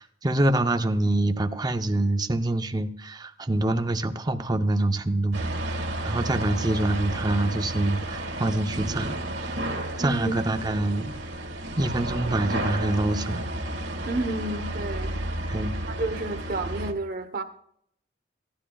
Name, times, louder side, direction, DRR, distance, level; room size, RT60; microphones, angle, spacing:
voice 1, 0.0-5.8 6.0-9.2 10.0-11.1 11.8-13.5 15.5-15.8, right 1 dB, 20° right, 0.6 m, -25 dB
sound 1, 5.3-16.9, right 1 dB, 85° right, 1.5 m, -32 dB
voice 2, 10.0-10.3 14.1-15.1 15.9-17.4, right 2 dB, 50° right, 0.9 m, -30 dB
17.0 x 12.5 x 2.3 m
head